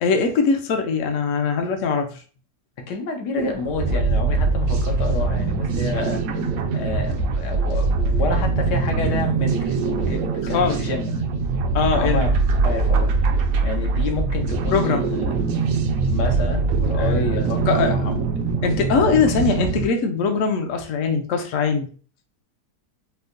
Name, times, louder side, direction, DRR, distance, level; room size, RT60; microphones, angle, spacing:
voice 1, 0.0-2.2 10.5-10.8 11.7-12.2 14.7-15.1 17.0-17.3 17.7-18.0 18.6-21.9, left 5 dB, 65° left, 4 dB, 0.8 m, -21 dB
voice 2, 2.9-6.2 6.7-9.8 10.0-11.1 11.9-12.4 12.6-13.1 13.6-15.2 16.0-18.2, left 3 dB, 85° left, 3 dB, 1.4 m, -29 dB
sound 1, 3.4-19.9, right 4 dB, 70° right, 0.9 m, -22 dB
4.6 x 2.1 x 2.5 m, 0.39 s
omnidirectional pair, 1.8 m